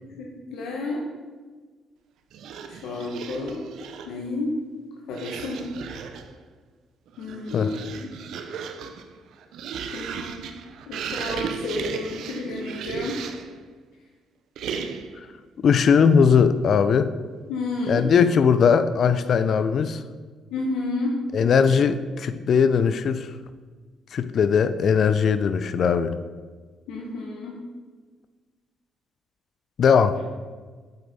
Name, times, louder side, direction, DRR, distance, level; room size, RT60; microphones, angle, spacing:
voice 1, 0.2-1.0 2.7-3.6 4.1-4.5 5.1-5.7 7.2-8.1 9.9-10.4 10.9-13.2 17.5-18.0 20.5-21.2 26.9-27.6, left 3 dB, 85° left, -1 dB, 0.9 m, -31 dB
sound 1, 2.3-4.2 5.1-6.3 7.1-13.6 14.5-15.2, right 6 dB, 80° right, 0.6 m, -35 dB
voice 2, 15.6-17.1 17.9-20.0 21.3-23.3 24.1-26.1 29.8-30.3, left 6 dB, 60° left, 11 dB, 0.4 m, -19 dB
8.0 x 5.1 x 4.0 m, 1.4 s
cardioid pair, 90°, 0 cm